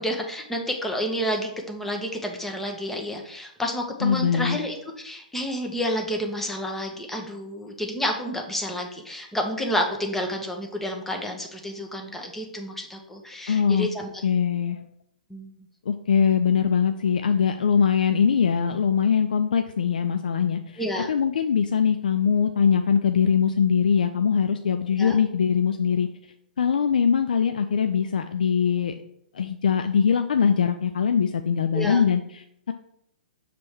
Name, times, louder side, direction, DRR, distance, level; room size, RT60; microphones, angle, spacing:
voice 1, 0.0-14.1 15.3-15.5 20.8-21.1 25.0-25.2 31.7-32.0, equal, 5° left, 2 dB, 0.9 m, -30 dB
voice 2, 4.0-4.6 13.5-13.9 14.2-14.8 15.9-20.8 21.1-26.1 26.6-28.9 29.3-32.7, left 7 dB, 70° left, 7 dB, 0.4 m, -22 dB
6.7 x 3.3 x 4.5 m, 0.73 s
figure-of-eight pair, 120°, 5 cm